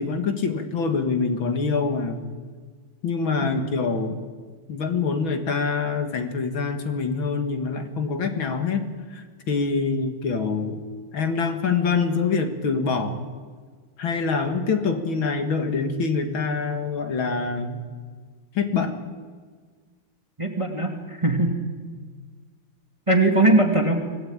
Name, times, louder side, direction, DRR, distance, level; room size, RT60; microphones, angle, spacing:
voice 1, 0.0-2.3 3.0-4.2 4.7-10.8 11.1-13.2 14.0-17.8 18.5-19.0, left 4 dB, 65° left, 7 dB, 2.6 m, -25 dB
voice 2, 3.4-3.8 20.4-21.6 23.1-24.0, right 2 dB, 15° right, 4 dB, 1.9 m, -21 dB
24.5 x 18.0 x 8.9 m, 1.6 s
omnidirectional pair, 2.3 m